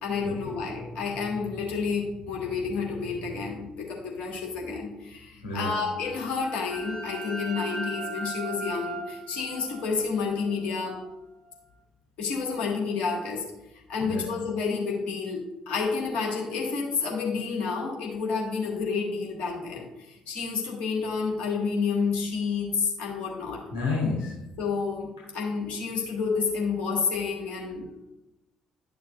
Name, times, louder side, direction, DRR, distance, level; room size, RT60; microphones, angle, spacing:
voice 1, 0.0-11.0 12.2-13.4 13.9-23.6 24.6-27.9, left 5 dB, 50° left, -2 dB, 2.0 m, -30 dB
voice 2, 5.4-5.8 14.0-14.2 23.7-24.3, left 3 dB, 75° left, -5 dB, 1.4 m, -30 dB
sound 1, 6.0-11.5, right 2 dB, 65° right, 1.7 m, -38 dB
11.0 x 6.7 x 2.7 m, 0.96 s
figure-of-eight pair, 45°, 3 cm